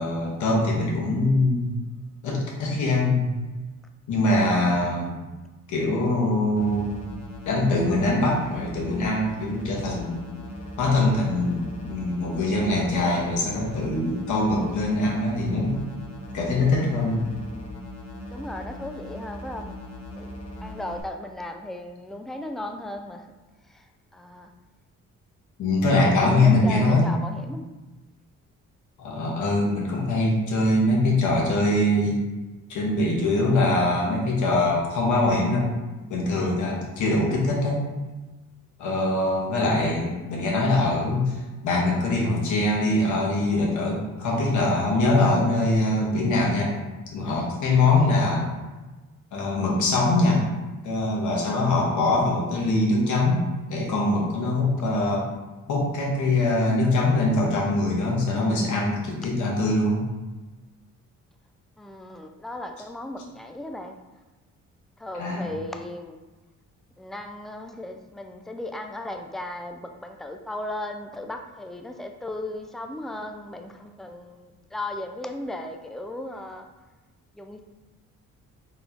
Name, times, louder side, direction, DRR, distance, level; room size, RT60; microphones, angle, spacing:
voice 1, 0.0-1.7 2.2-3.2 4.1-5.2 5.7-6.9 7.4-10.2 10.8-15.8 16.3-17.2 25.6-27.1 29.0-32.2 32.7-37.8 38.8-46.7 47.1-48.5 49.3-50.4 50.8-55.3 55.7-60.0 65.2-65.5, left 2 dB, 75° left, -2 dB, 1.4 m, -23 dB
sound 1, 6.6-21.0, left 1 dB, 60° left, 1.0 m, -39 dB
voice 2, 18.3-19.8 20.2-20.3 20.6-23.3 23.7-24.5 26.2-27.7 59.2-59.3 61.8-64.0 65.0-66.2 67.0-76.7 77.4-77.6, left 1 dB, ahead, 5 dB, 0.4 m, -36 dB
4.2 x 3.6 x 2.9 m, 1.2 s
cardioid pair, 90°, 30 cm